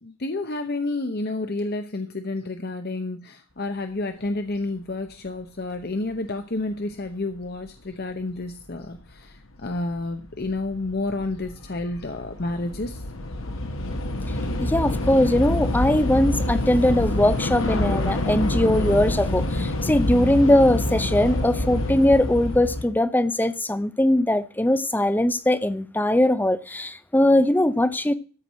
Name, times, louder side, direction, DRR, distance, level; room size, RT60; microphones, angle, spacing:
voice 1, 0.0-13.0, left 2 dB, 45° left, 0.9 m, -30 dB
Train / Subway metro underground, 8.8-8.9 9.7-10.0 10.3-22.8, left 1 dB, 65° left, 1.5 m, -26 dB
voice 2, 14.6-28.1, left 1 dB, 10° left, 0.6 m, -20 dB
13.5 x 4.8 x 7.4 m
head